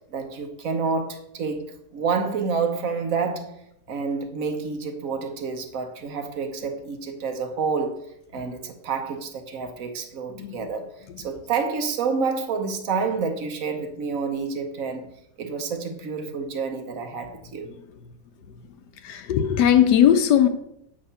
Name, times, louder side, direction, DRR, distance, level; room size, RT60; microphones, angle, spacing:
voice 1, 0.0-3.6 3.9-8.0 8.3-15.0 15.4-17.7, right 5 dB, 60° right, 1.1 m, -28 dB
voice 2, 10.3-10.7 11.1-11.3 17.6-17.8 19.0-20.5, left 9 dB, 80° left, 1.2 m, -20 dB
7.4 x 2.9 x 5.4 m
omnidirectional pair, 1.8 m